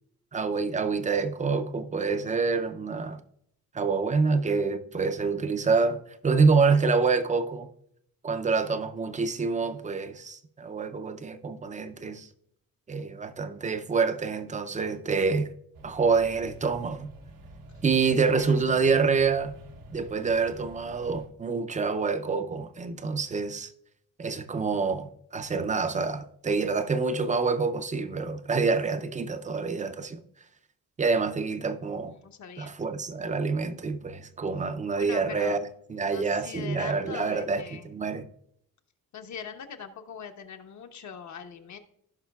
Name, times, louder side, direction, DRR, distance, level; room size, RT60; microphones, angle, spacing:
voice 1, 0.3-3.2 3.7-7.7 8.2-12.3 12.9-15.5 15.8-17.1 17.8-19.5 19.9-23.7 24.2-30.2 31.0-32.2 32.6-38.3, right 4 dB, 20° right, 0.4 m, -27 dB
sound 1, 15.7-21.3, right 1 dB, 80° right, 1.1 m, -48 dB
voice 2, 18.0-18.9 32.2-32.7 34.9-35.6 36.1-37.9 39.1-41.8, left 7 dB, 55° left, 0.9 m, -42 dB
16.0 x 5.5 x 2.3 m
cardioid pair, 140°, 34 cm